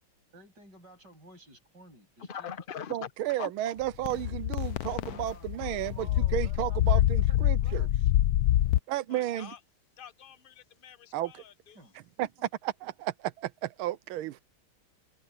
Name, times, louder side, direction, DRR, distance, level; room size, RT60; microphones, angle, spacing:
voice 1, 0.3-2.6 5.1-7.9 11.7-11.9 12.4-12.5, right 1 dB, 55° right, 8.4 m, -54 dB
voice 2, 2.2-3.1 3.4-3.5 9.1-9.6 10.0-11.8, left 8 dB, 40° left, 0.7 m, -43 dB
voice 3, 2.9-7.9 8.9-9.5 11.1-11.4 12.2-12.3 12.6-14.4, right 13 dB, 90° right, 1.5 m, -33 dB
sound 1, 4.0-8.8, left 13 dB, 75° left, 0.8 m, -26 dB
omnidirectional pair, 2.2 m